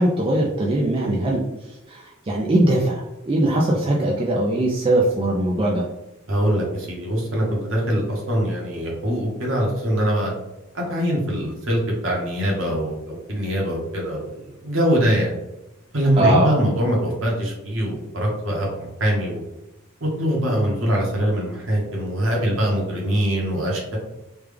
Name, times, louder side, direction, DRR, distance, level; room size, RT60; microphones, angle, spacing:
voice 1, 0.0-1.4 1.9-5.8 16.2-16.5, right 1 dB, 25° right, -3 dB, 0.4 m, -20 dB
voice 2, 6.3-10.3 10.7-15.3 15.9-19.4 20.0-24.0, equal, 65° right, -2 dB, 1.0 m, -23 dB
3.4 x 2.3 x 3.3 m, 0.94 s
head